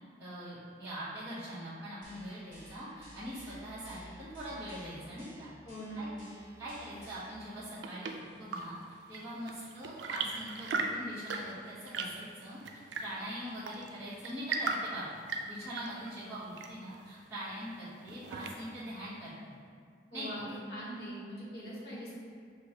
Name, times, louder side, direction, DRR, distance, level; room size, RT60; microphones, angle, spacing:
voice 1, 0.2-5.5 5.9-6.1 6.6-8.7 9.1-12.6 13.0-15.0 15.4-19.6 20.1-20.4, equal, 15° right, -15 dB, 1.0 m, -42 dB
sound 1, 2.0-7.3, equal, 25° left, 1.1 m, -54 dB
voice 2, 5.6-6.2 15.9-16.3 20.1-22.2, equal, 65° left, -7 dB, 1.1 m, -42 dB
Chirp tweet / Engine / Tap, 7.4-18.9, right 4 dB, 90° right, 0.3 m, -40 dB
6.2 x 2.2 x 2.8 m, 2.2 s
head